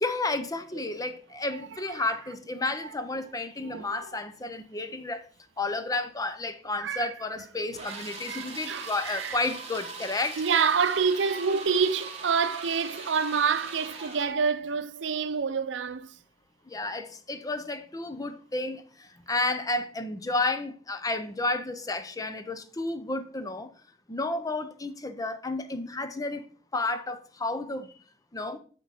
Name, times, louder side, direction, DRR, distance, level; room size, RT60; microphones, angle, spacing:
voice 1, 0.0-5.2 5.6-10.4 16.7-23.7 24.1-26.4 26.7-27.9 28.3-28.6, left 2 dB, 20° left, 0.6 m, -31 dB
voice 2, 3.6-4.1 6.8-7.1 7.7-7.9 8.3-9.4 10.4-16.2, right 6 dB, 90° right, 0.5 m, -27 dB
sound 1, 7.7-14.4, right 4 dB, 35° right, 1.4 m, -41 dB
8.0 x 3.9 x 4.8 m
head